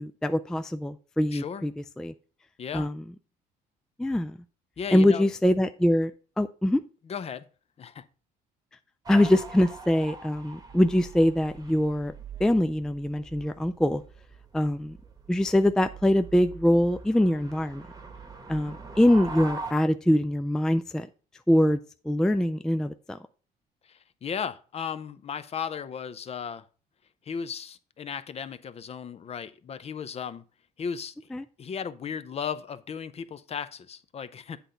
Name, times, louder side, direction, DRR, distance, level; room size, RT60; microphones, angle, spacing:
voice 1, 0.0-1.7 2.0-2.1 2.7-3.0 4.0-4.4 4.9-6.1 6.4-6.8 9.1-12.1 12.4-14.0 14.5-15.0 15.3-17.8 18.5-21.1 21.5-21.8 22.1-23.2 31.3-31.4, left 1 dB, 5° left, 0.3 m, -23 dB
voice 2, 1.3-1.6 2.6-2.9 4.8-5.3 7.1-7.5 7.8-8.0 23.9-26.6 27.3-30.4 30.8-31.1 31.6-34.6, left 7 dB, 35° left, 0.6 m, -35 dB
sound 1, 9.1-19.7, right 4 dB, 20° right, 1.1 m, -43 dB
8.2 x 3.9 x 5.6 m
cardioid pair, 110°, 17 cm